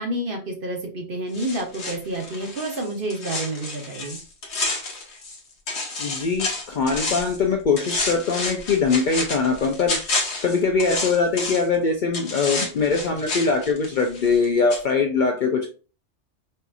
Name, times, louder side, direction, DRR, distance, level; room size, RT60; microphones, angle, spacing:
voice 1, 0.0-4.2, right 1 dB, 55° right, 2 dB, 1.0 m, -29 dB
sound 1, 1.3-5.4 5.7-7.4 7.8-11.8 12.1-14.5 14.7-14.8, left 3 dB, 75° left, 1.2 m, -30 dB
voice 2, 6.0-10.0 10.4-15.7, left 4 dB, 60° left, 3 dB, 0.5 m, -22 dB
4.2 x 2.6 x 2.4 m, 0.35 s
omnidirectional pair, 1.2 m